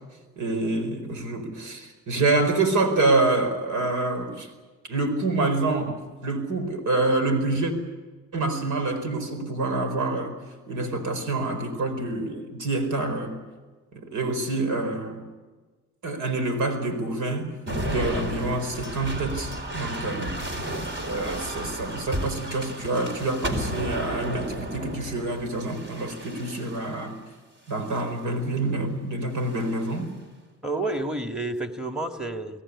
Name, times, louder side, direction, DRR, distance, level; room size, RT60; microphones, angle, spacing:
voice 1, 0.4-4.5 4.9-7.7 8.3-10.4 10.7-13.4 13.9-15.2 16.0-17.5 17.8-20.4 21.0-27.2 27.7-30.1, right 2 dB, 75° right, 8 dB, 4.8 m, -27 dB
sound 1, 17.7-27.0 27.7-28.3 29.4-30.0, equal, 40° right, 4.1 m, -33 dB
voice 2, 30.6-32.6, right 2 dB, ahead, 6 dB, 2.0 m, -30 dB
23.5 x 16.5 x 9.9 m, 1.3 s
cardioid pair, 90°, 30 cm